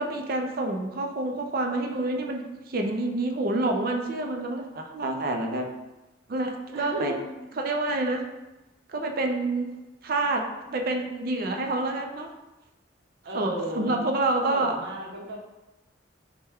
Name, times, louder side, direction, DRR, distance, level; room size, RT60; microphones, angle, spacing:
voice 1, 0.0-5.7 6.3-7.2 7.5-8.2 8.9-9.7 10.0-10.4 10.7-12.3 13.3-14.8, right 2 dB, 55° right, 3 dB, 0.4 m, -28 dB
voice 2, 6.7-7.5 13.2-14.0 14.5-15.4, right 1 dB, 70° right, -2 dB, 0.8 m, -35 dB
4.3 x 2.2 x 3.4 m, 1.0 s
head